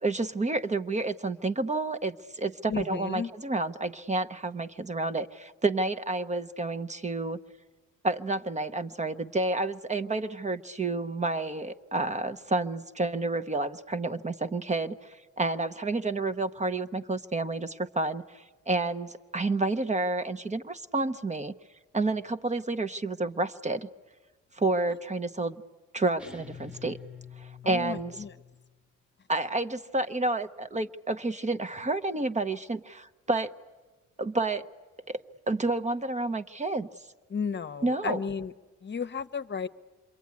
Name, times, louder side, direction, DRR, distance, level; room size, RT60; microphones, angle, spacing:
voice 1, 0.0-7.4 8.0-21.5 21.9-23.9 24.6-25.6 25.9-27.0 27.4-28.2 29.3-33.5 34.2-34.7 35.1-35.2 35.5-36.9 37.8-38.2, right 2 dB, 25° right, 11 dB, 0.8 m, -30 dB
voice 2, 2.7-3.3 27.6-28.3 37.3-38.5 38.8-39.7, left 6 dB, 35° left, 11 dB, 1.0 m, -33 dB
sound 1, 26.2-28.8, left 6 dB, 5° right, 1.4 m, -47 dB
27.0 x 22.5 x 9.6 m, 1.4 s
cardioid pair, 90°, 30 cm